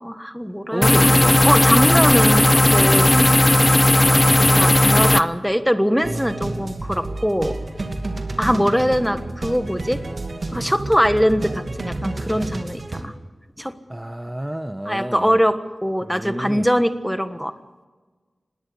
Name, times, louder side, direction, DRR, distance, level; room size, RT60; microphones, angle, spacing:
voice 1, 0.0-1.1 1.4-3.3 3.9-7.6 8.4-10.0 10.5-13.1 13.6-13.7 14.8-17.5, equal, ahead, 10 dB, 1.4 m, -22 dB
voice 2, 0.7-1.4 8.4-8.7 13.9-15.4 16.0-16.7, right 1 dB, 15° right, 10 dB, 0.9 m, -29 dB
sound 1, 0.8-5.2, left 1 dB, 20° left, 0.8 m, -15 dB
sound 2, 6.0-13.0, right 2 dB, 55° right, 2.6 m, -30 dB
20.0 x 17.5 x 8.6 m, 1.3 s
wide cardioid pair, 90°, 0 cm